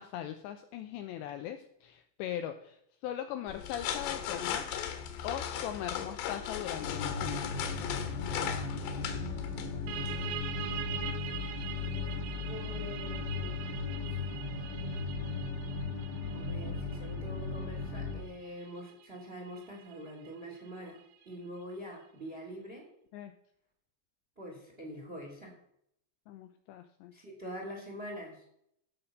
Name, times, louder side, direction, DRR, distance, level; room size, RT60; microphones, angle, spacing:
voice 1, 0.0-2.8 3.0-4.9 5.2-7.5 23.1-23.3 26.3-27.1, left 11 dB, 90° left, 7 dB, 2.5 m, -40 dB
sound 1, 3.5-10.3, left 9 dB, 70° left, 3.2 m, -37 dB
sound 2, 6.8-18.2, left 4 dB, 50° left, 1.2 m, -37 dB
sound 3, 9.9-21.2, right 11 dB, 75° right, 2.8 m, -44 dB
voice 2, 12.4-14.1 16.3-22.9 24.4-25.5 27.1-28.4, equal, 20° right, 1 dB, 1.8 m, -45 dB
15.5 x 5.9 x 6.6 m, 0.72 s
omnidirectional pair, 5.8 m